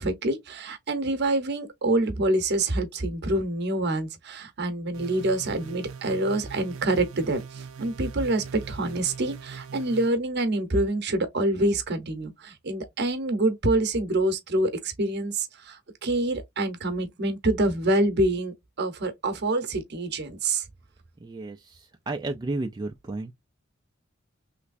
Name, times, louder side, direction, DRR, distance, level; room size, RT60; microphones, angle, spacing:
voice 1, 0.0-20.6, right 2 dB, 55° right, 0.9 m, -26 dB
sound 1, 4.9-10.1, right 5 dB, 80° right, 0.5 m, -42 dB
voice 2, 21.2-23.3, right 2 dB, 20° right, 0.3 m, -33 dB
3.3 x 3.0 x 2.5 m
head